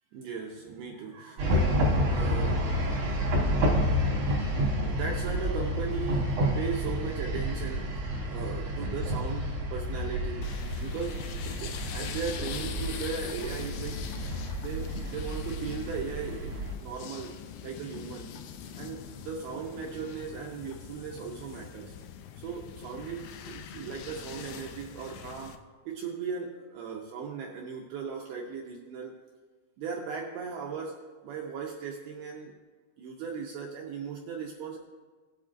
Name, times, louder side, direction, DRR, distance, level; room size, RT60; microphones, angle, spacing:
voice 1, 0.1-2.7 3.4-4.1 4.6-10.5 10.8-14.0 14.6-17.3 17.6-18.3 18.8-21.9 22.4-25.6 25.9-29.1 29.8-31.0 31.2-32.5 33.0-34.8, right 6 dB, 80° right, -1 dB, 2.3 m, -38 dB
sound 1, 1.4-16.7, equal, 60° right, 1.8 m, -29 dB
sound 2, 10.4-25.6, left 8 dB, 80° left, 2.4 m, -42 dB
17.5 x 8.5 x 2.6 m, 1.4 s
omnidirectional pair, 5.2 m